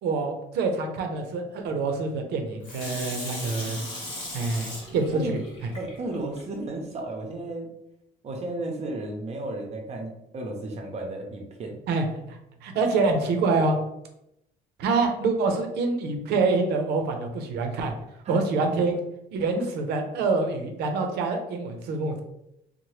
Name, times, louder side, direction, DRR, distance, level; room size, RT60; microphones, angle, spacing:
voice 1, 0.0-3.8 4.3-5.4 11.9-12.1 12.6-13.8 14.8-18.0 18.3-19.0 19.3-22.2, right 3 dB, 80° right, 5 dB, 0.6 m, -26 dB
Water tap faucet / Sink (filling or washing), 2.6-6.4 6.9-7.0, left 1 dB, 30° left, 1.0 m, -37 dB
voice 2, 5.7-7.7 8.2-11.8 18.2-18.4, right 2 dB, 40° right, 2 dB, 0.7 m, -34 dB
2.8 x 2.1 x 3.1 m, 0.83 s
cardioid pair, 110°, 17 cm